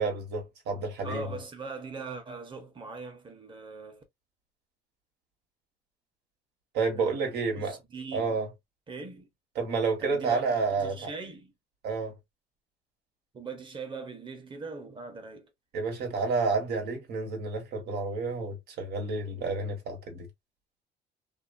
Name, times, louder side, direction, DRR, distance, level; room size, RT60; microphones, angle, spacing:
voice 1, 0.0-1.3 6.7-7.8 8.1-8.5 9.6-11.1 11.8-12.1 15.7-20.3, right 4 dB, 75° right, 1.4 m, -30 dB
voice 2, 1.0-4.0 6.9-8.4 8.9-9.3 10.0-11.5 11.9-12.0 13.3-15.5, right 3 dB, 30° right, 1.0 m, -41 dB
2.8 x 2.2 x 2.5 m
cardioid pair, 110°, 17 cm